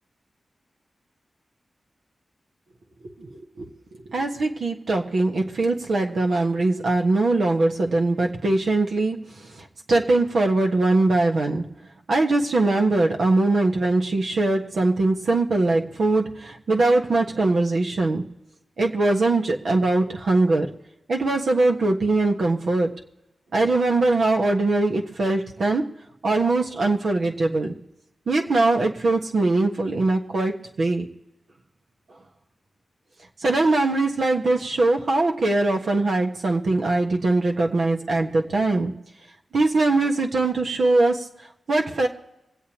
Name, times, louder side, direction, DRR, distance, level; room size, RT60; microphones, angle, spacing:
voice 1, 3.2-11.7 12.1-18.2 18.8-20.7 21.1-22.9 23.5-25.9 26.2-27.7 28.3-31.1 33.4-38.9 39.5-42.1, right 2 dB, 75° right, 1 dB, 1.4 m, -22 dB
25.0 x 8.4 x 3.0 m, 0.91 s
cardioid pair, 40°, 0 cm